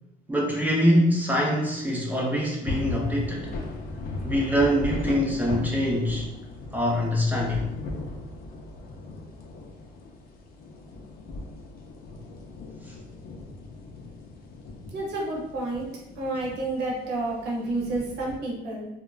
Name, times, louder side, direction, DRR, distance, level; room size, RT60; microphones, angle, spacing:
voice 1, 0.3-3.5 4.2-6.3 6.7-7.7 12.9-13.0, equal, 10° right, -3 dB, 0.5 m, -24 dB
sound 1, 2.6-18.4, left 2 dB, 60° left, 0.5 m, -38 dB
voice 2, 14.9-15.9 16.2-18.9, right 2 dB, 80° right, -3 dB, 0.8 m, -30 dB
2.3 x 2.1 x 3.2 m, 0.94 s
cardioid pair, 110°, 17 cm